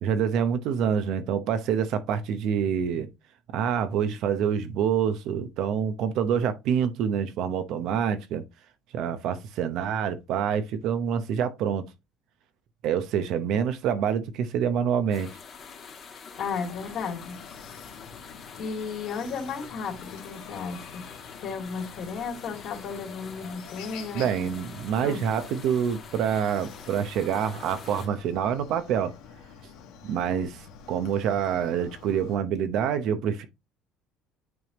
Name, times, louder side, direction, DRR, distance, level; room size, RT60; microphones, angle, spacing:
voice 1, 0.0-3.1 3.5-8.4 8.9-11.9 12.8-15.3 24.1-29.1 30.0-33.5, right 8 dB, 65° right, 0.8 m, -26 dB
sound 1, 15.1-28.1, left 5 dB, 35° left, 2.0 m, -46 dB
voice 2, 16.4-17.4 18.5-21.0 21.4-24.3 25.0-25.2, left 5 dB, 55° left, 2.6 m, -34 dB
Chicken rooster, 16.5-32.3, left 7 dB, 85° left, 1.4 m, -47 dB
9.5 x 3.4 x 2.9 m
cardioid pair, 140°, 0 cm